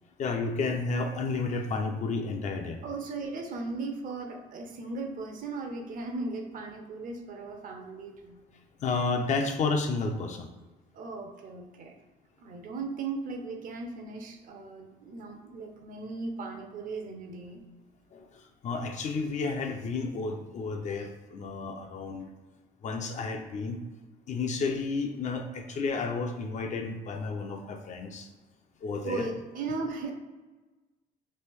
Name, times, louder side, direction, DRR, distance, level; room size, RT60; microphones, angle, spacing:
voice 1, 0.2-2.8 8.8-10.5 18.1-22.3 22.8-23.8 24.3-28.3 28.8-29.3, left 4 dB, 45° left, 5 dB, 0.5 m, -31 dB
voice 2, 2.8-8.4 10.9-11.9 12.4-17.6 29.0-30.1, right 3 dB, 55° right, 3 dB, 0.6 m, -37 dB
3.2 x 2.5 x 3.4 m, 1.2 s
cardioid pair, 110°, 17 cm